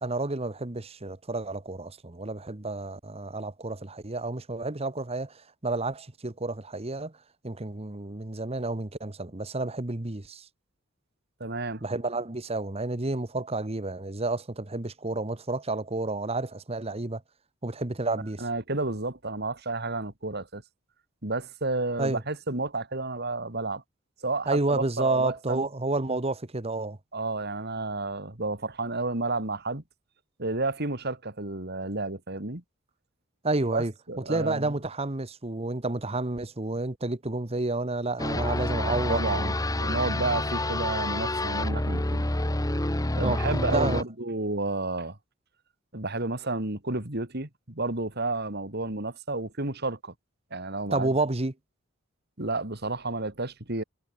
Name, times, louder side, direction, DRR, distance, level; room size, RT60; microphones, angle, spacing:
voice 1, 0.0-7.1 7.4-10.5 11.8-17.2 17.6-18.4 22.0-22.2 24.5-27.0 33.4-33.9 34.3-39.5 43.2-43.4 43.7-44.0 50.9-51.5, right 2 dB, 30° right, 1.2 m, -30 dB
voice 2, 11.4-11.8 18.4-20.6 21.2-23.8 24.2-25.6 27.1-29.8 30.4-32.6 33.7-34.8 38.8-42.2 43.1-45.2 45.9-50.1 50.5-51.1 52.4-53.8, right 2 dB, 50° right, 3.2 m, -31 dB
sound 1, 38.2-44.0, left 1 dB, 15° left, 1.3 m, -28 dB
head